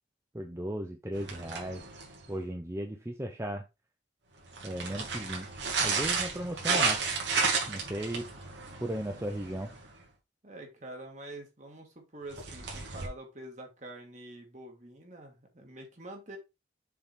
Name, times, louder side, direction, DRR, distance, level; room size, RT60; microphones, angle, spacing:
voice 1, 0.3-1.8 2.3-3.6 4.6-7.1 7.7-8.3 8.8-9.7, right 1 dB, 15° right, 3 dB, 0.7 m, -36 dB
sound 1, 1.1-2.4 4.4-10.0 12.3-13.1, right 4 dB, 75° right, 2.4 m, -33 dB
voice 2, 10.4-16.4, right 1 dB, 40° right, 2 dB, 2.0 m, -46 dB
6.9 x 3.9 x 4.3 m, 0.25 s
head